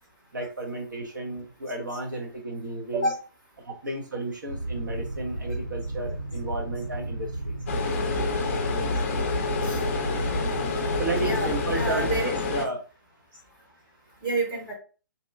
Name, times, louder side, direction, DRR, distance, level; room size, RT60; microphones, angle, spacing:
voice 1, 0.3-3.1 3.6-7.6 11.0-12.1 12.5-12.8, right 2 dB, 65° right, 2 dB, 0.8 m, -33 dB
sound 1, 4.5-12.0, right 2 dB, 85° right, 1.5 m, -33 dB
sound 2, 7.7-12.7, left 3 dB, 40° left, 0.4 m, -28 dB
voice 2, 10.5-11.5 11.7-12.3 14.2-14.7, right 2 dB, 25° right, -4 dB, 0.9 m, -29 dB
2.8 x 2.2 x 2.3 m, 0.34 s
figure-of-eight pair, 130°, 11 cm